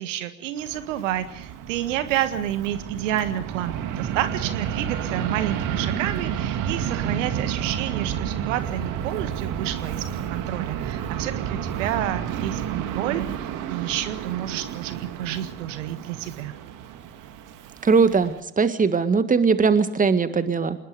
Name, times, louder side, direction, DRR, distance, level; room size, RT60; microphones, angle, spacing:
voice 1, 0.0-10.0 10.3-16.5, right 12 dB, 65° right, 11 dB, 1.7 m, -29 dB
Fixed-wing aircraft airplane, 0.6-18.4, right 9 dB, 50° right, 2.3 m, -31 dB
voice 2, 17.8-20.8, right 5 dB, 20° right, 11 dB, 1.9 m, -20 dB
26.5 x 20.5 x 5.2 m, 0.77 s
figure-of-eight pair, 65°, 41 cm